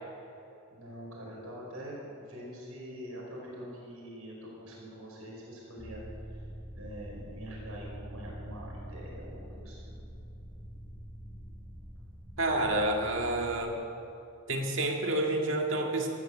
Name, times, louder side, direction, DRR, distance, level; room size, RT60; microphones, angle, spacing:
voice 1, 0.7-6.0 6.3-6.4 6.7-9.9, equal, 85° right, -3 dB, 4.8 m, -44 dB
sound 1, 5.8-13.6, equal, 10° left, 4.5 m, -45 dB
voice 2, 12.4-13.8 14.5-16.1, right 1 dB, 60° right, 2 dB, 2.1 m, -29 dB
13.5 x 13.5 x 7.9 m, 2.7 s
head